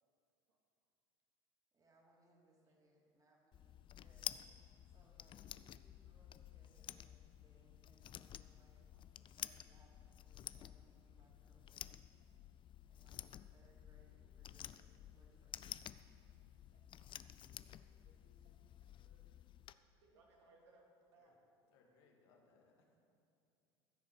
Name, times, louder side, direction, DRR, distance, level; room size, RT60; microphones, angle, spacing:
voice 1, 1.7-8.8 9.1-12.1 12.9-15.8 18.2-18.3, right 2 dB, 25° right, -1 dB, 3.0 m, -72 dB
sound 1, 3.5-19.7, left 11 dB, 35° left, 0.4 m, -52 dB
voice 2, 16.7-17.7 18.0-18.5 18.8-19.3 19.5-20.8 21.1-21.3, right 3 dB, 85° right, -1 dB, 2.5 m, -71 dB
voice 3, 21.7-23.0, left 4 dB, 75° left, 1 dB, 2.1 m, -71 dB
15.0 x 6.6 x 6.3 m, 2.5 s
hypercardioid pair, 80°, 14 cm